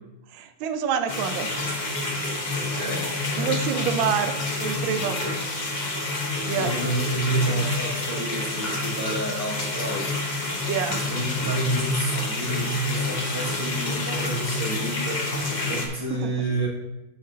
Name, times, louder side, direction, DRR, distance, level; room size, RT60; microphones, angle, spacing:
voice 1, 0.3-1.5 3.4-5.2 6.4-6.7 10.7-11.0 16.2-16.3, right 7 dB, 75° right, 8 dB, 1.4 m, -27 dB
sound 1, 1.1-15.9, left 2 dB, 50° left, 0.5 m, -28 dB
voice 2, 2.5-3.6 6.5-10.2 10.9-15.3 15.7-16.7, right 2 dB, 15° right, -4 dB, 1.2 m, -29 dB
11.5 x 5.4 x 2.8 m, 0.98 s
omnidirectional pair, 2.2 m